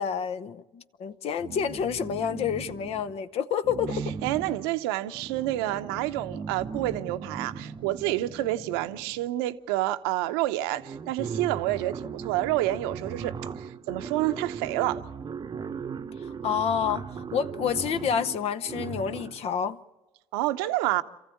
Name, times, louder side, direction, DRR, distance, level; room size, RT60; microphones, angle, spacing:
voice 1, 0.0-4.0 16.4-19.8, left 7 dB, 55° left, 0.8 m, -29 dB
sound 1, 1.4-3.2 3.6-9.3 10.2-10.3 10.6-19.5, right 6 dB, 35° right, 0.8 m, -38 dB
voice 2, 4.2-15.0 20.3-21.0, right 15 dB, 80° right, 0.8 m, -28 dB
27.5 x 15.0 x 8.5 m
hypercardioid pair, 65°, 12 cm